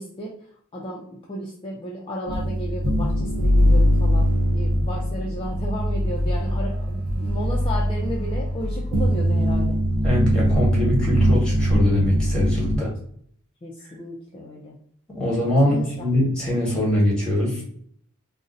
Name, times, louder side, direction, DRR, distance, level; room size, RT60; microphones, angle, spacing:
voice 1, 0.0-9.8 13.6-14.8 15.6-16.1, equal, 25° left, -3 dB, 0.4 m, -34 dB
sound 1, 2.3-12.8, equal, 85° right, 0.8 m, -21 dB
voice 2, 10.0-12.9 15.1-17.6, left 1 dB, 5° left, -5 dB, 1.1 m, -22 dB
2.5 x 2.1 x 3.7 m, 0.62 s
head